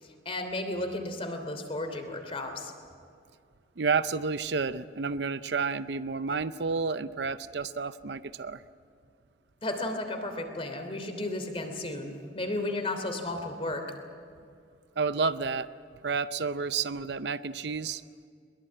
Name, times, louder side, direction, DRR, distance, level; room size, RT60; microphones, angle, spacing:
voice 1, 0.0-2.7 9.6-13.8, left 2 dB, 30° left, 6 dB, 3.0 m, -34 dB
voice 2, 3.8-8.6 15.0-15.7 16.0-18.0, right 5 dB, 60° right, 13 dB, 0.6 m, -30 dB
22.5 x 22.0 x 8.7 m, 2.4 s
head